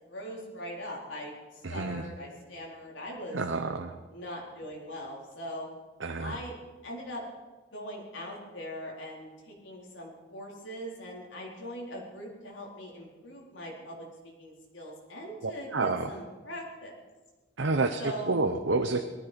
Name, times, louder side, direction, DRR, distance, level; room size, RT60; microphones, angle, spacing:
voice 1, 0.1-3.4 4.1-5.7 6.2-6.5 6.8-7.2 7.7-14.0 14.2-16.9 18.0-18.4, equal, 80° left, -2 dB, 4.2 m, -41 dB
voice 2, 1.6-2.0 3.3-3.9 6.0-6.4 15.4-16.1 17.6-18.0 18.3-19.0, right 3 dB, 75° right, 6 dB, 0.9 m, -29 dB
19.0 x 14.0 x 5.2 m, 1.2 s
head